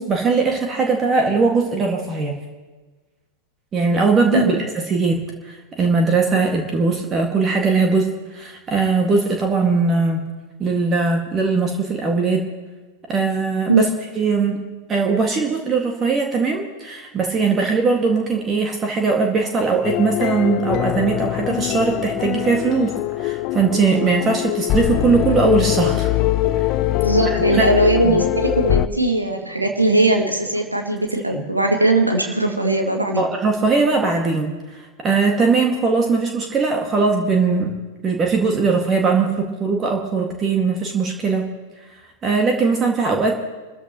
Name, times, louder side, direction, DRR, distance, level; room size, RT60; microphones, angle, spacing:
voice 1, 0.0-2.4 3.7-5.2 5.4-10.2 10.6-12.4 13.1-13.9 14.2-14.6 14.9-22.9 23.2-26.1 27.5-28.2 31.3-31.4 33.2-34.6 35.0-37.8 38.0-41.5 42.2-43.5, right 4 dB, 25° right, 2 dB, 1.9 m, -20 dB
sound 1, 19.8-28.9, left 15 dB, 40° left, 0.4 m, -22 dB
voice 2, 27.0-33.2, right 2 dB, 85° right, 2 dB, 2.2 m, -19 dB
28.0 x 14.0 x 3.0 m, 1.3 s
figure-of-eight pair, 90°, 0 cm